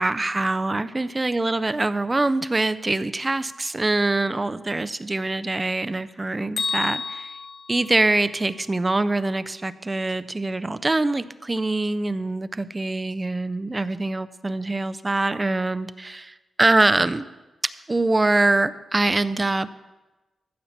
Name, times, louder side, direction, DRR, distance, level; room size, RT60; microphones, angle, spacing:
voice 1, 0.0-7.3 7.7-17.3 17.9-19.7, right 2 dB, 15° right, 14 dB, 0.4 m, -24 dB
Bell, 6.6-8.6, left 5 dB, 75° left, 1.2 m, -31 dB
14.5 x 5.6 x 7.1 m, 1.1 s
wide cardioid pair, 155°, 0 cm